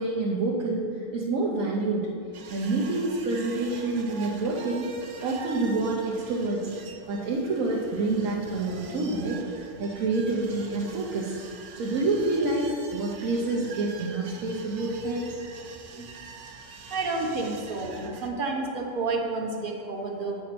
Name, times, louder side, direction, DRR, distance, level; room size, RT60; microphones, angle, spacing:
voice 1, 0.0-2.1 2.5-4.9 5.2-6.6 7.1-11.3 11.7-15.4, right 2 dB, 90° right, -3 dB, 1.2 m, -28 dB
sound 1, 2.3-18.3, right 5 dB, 70° right, 1.0 m, -45 dB
voice 2, 16.9-20.4, right 3 dB, 45° right, 0 dB, 1.1 m, -30 dB
8.5 x 4.4 x 5.9 m, 2.5 s
omnidirectional pair, 1.4 m